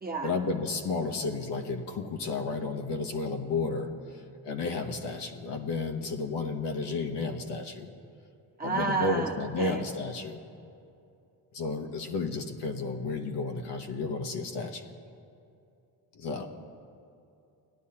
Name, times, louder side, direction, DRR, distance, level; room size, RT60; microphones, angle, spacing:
voice 1, 0.2-3.9 4.4-7.9 8.6-10.4 11.5-14.8 16.1-16.5, left 3 dB, 65° left, 4 dB, 1.0 m, -32 dB
voice 2, 8.6-9.3 9.6-9.8, right 3 dB, 20° right, 0 dB, 1.2 m, -30 dB
17.5 x 10.5 x 2.8 m, 2.6 s
cardioid pair, 80°, 45 cm